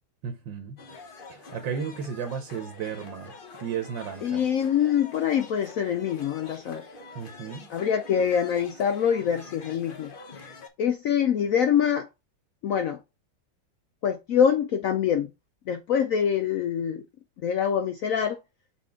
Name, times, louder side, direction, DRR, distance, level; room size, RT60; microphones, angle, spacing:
voice 1, 0.2-0.8 1.3-3.3 3.6-4.5 7.1-7.7, right 7 dB, 80° right, 1.6 m, -34 dB
sound 1, 0.8-10.7, left 3 dB, 40° left, 0.8 m, -46 dB
voice 2, 4.2-6.8 7.7-10.5 10.8-12.1 12.6-13.0 14.0-15.3 15.7-17.0 17.4-18.4, left 8 dB, 80° left, 0.7 m, -25 dB
6.1 x 4.3 x 3.6 m
omnidirectional pair, 2.0 m